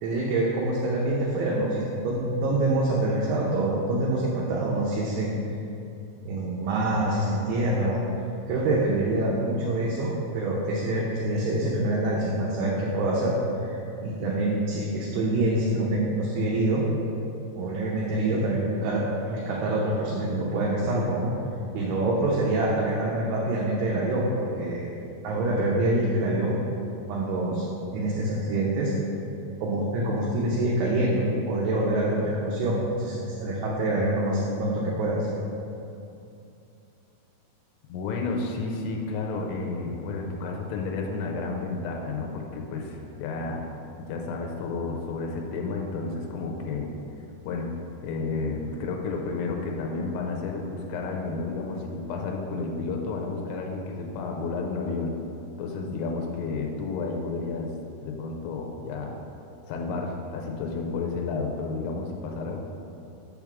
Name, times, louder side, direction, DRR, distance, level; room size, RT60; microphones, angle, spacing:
voice 1, 0.0-5.3 6.2-8.0 8.5-13.3 13.6-16.8 17.5-19.0 19.3-21.3 21.7-24.9 25.2-26.6 27.1-27.6 27.9-28.9 29.6-35.3, right 1 dB, 80° right, -4 dB, 2.6 m, -26 dB
voice 2, 37.9-43.7 44.1-46.9 47.5-47.7 48.0-55.1 55.6-57.7 58.0-59.2 59.7-62.6, left 3 dB, 90° left, 1 dB, 2.9 m, -31 dB
6.5 x 3.5 x 5.9 m, 2.7 s
omnidirectional pair, 5.1 m